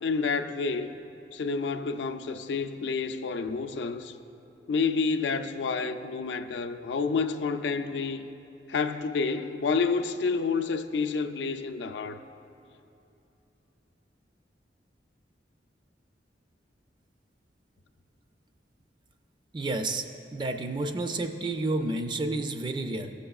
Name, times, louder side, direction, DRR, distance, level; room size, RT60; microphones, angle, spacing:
voice 1, 0.0-0.9 1.3-4.2 4.7-8.3 8.7-12.2, left 4 dB, 75° left, 0.4 m, -29 dB
voice 2, 19.5-20.1 20.3-23.1, right 2 dB, 25° right, 0.4 m, -30 dB
16.0 x 6.6 x 2.4 m
head